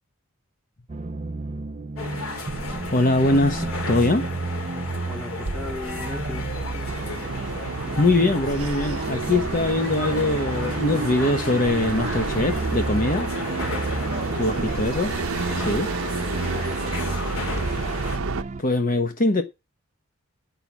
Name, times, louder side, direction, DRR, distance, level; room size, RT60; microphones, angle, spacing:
sound 1, 0.9-18.6, right 3 dB, 30° right, 0.5 m, -32 dB
sound 2, 2.0-18.2, left 2 dB, 75° left, 2.6 m, -34 dB
voice 1, 2.7-4.2 8.0-13.3 14.4-15.1 15.5-15.9 18.6-19.4, left 2 dB, 40° left, 1.1 m, -22 dB
voice 2, 5.0-7.1 15.8-16.8, left 2 dB, 5° left, 2.2 m, -40 dB
sound 3, 6.9-18.4, right 4 dB, 75° right, 0.8 m, -30 dB
9.2 x 5.8 x 8.3 m
head